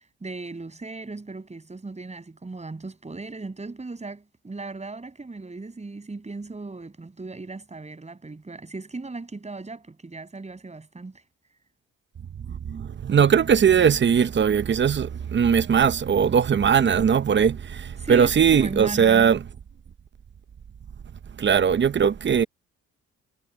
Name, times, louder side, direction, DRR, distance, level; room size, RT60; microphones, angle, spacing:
voice 1, 0.2-11.2 18.0-19.4, right 3 dB, 20° right, 7.1 m, -37 dB
voice 2, 12.5-19.4 21.4-22.4, right 7 dB, 40° right, 0.8 m, -20 dB
cardioid pair, 90°, 30 cm